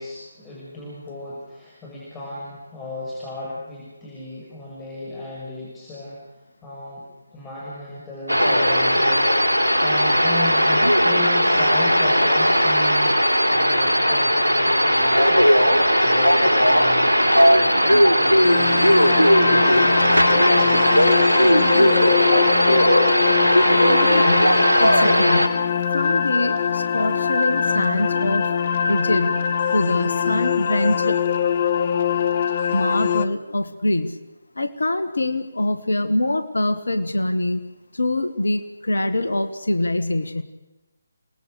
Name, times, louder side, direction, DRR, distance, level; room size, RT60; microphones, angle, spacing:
voice 1, 0.0-6.2 6.6-7.0 7.3-9.3 9.8-21.0, left 2 dB, 10° left, -6 dB, 6.1 m, -35 dB
sound 1, 8.3-25.5, equal, 80° right, 3.5 m, -17 dB
sound 2, 18.4-33.3, left 7 dB, 40° left, 1.0 m, -23 dB
voice 2, 23.9-25.6 25.9-28.5 28.9-31.2 32.7-34.2 34.5-37.6 37.9-40.4, left 1 dB, 70° left, 10 dB, 1.7 m, -24 dB
29.0 x 19.5 x 6.6 m, 1.1 s
figure-of-eight pair, 145°, 0 cm